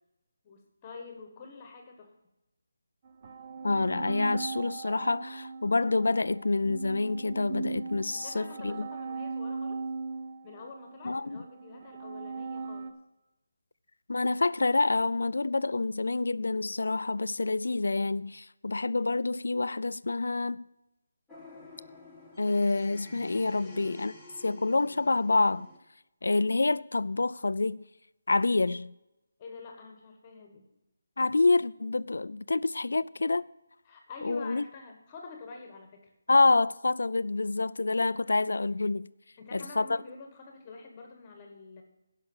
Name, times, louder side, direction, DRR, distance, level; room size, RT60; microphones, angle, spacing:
voice 1, 0.4-2.1 8.1-9.8 10.4-12.9 23.6-23.9 29.4-30.6 33.8-36.1 39.4-41.8, left 4 dB, 20° left, 1.4 m, -47 dB
sound 1, 3.0-12.9, right 4 dB, 25° right, 0.7 m, -39 dB
voice 2, 3.6-8.9 11.0-11.4 14.1-20.6 22.4-25.7 26.2-27.8 28.3-28.9 31.2-33.4 34.2-34.7 36.3-39.1 39.5-39.9, left 3 dB, 85° left, 0.4 m, -27 dB
sound 2, 21.3-25.8, left 2 dB, ahead, 1.2 m, -50 dB
11.5 x 5.8 x 7.2 m
hypercardioid pair, 175°, 0 cm